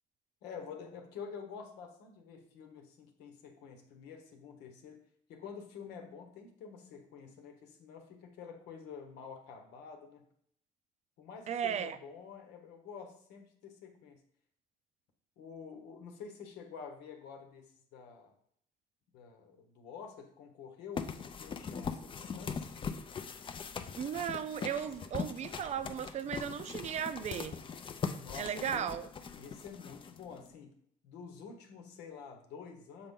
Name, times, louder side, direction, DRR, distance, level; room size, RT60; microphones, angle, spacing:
voice 1, 0.4-10.2 11.2-14.2 15.4-18.3 19.1-22.8 28.1-28.9 29.3-30.7 31.0-33.1, left 6 dB, 90° left, 1.1 m, -48 dB
voice 2, 11.5-12.0 24.0-27.6 28.4-29.1, right 8 dB, 40° right, 0.5 m, -36 dB
sound 1, 21.0-30.5, left 6 dB, 30° left, 0.5 m, -41 dB
6.8 x 4.1 x 3.7 m
cardioid pair, 110°, 17 cm